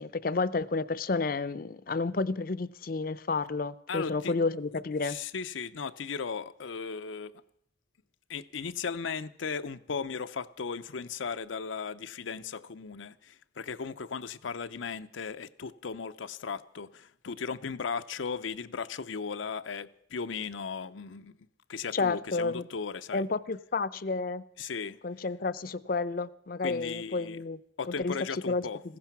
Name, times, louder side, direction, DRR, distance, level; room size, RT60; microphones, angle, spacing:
voice 1, 0.0-5.2 21.9-22.6 23.1-24.4 25.0-27.6 28.0-28.2 28.5-28.7, left 3 dB, 50° left, 0.5 m, -31 dB
voice 2, 3.9-4.3 5.0-7.3 8.3-21.4 21.7-23.3 24.6-25.0 26.6-27.4 27.8-28.8, left 5 dB, 90° left, 0.6 m, -36 dB
16.0 x 15.0 x 6.0 m
head